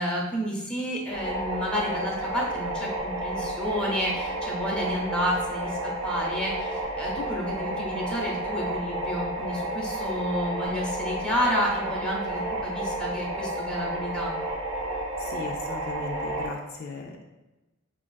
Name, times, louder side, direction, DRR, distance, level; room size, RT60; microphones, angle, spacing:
voice 1, 0.0-14.3, equal, 5° left, -4 dB, 0.6 m, -30 dB
sound 1, 1.1-16.5, right 1 dB, 70° right, 0.6 m, -31 dB
voice 2, 15.2-17.2, left 3 dB, 50° left, 1 dB, 0.3 m, -37 dB
4.5 x 2.4 x 2.3 m, 1.1 s
head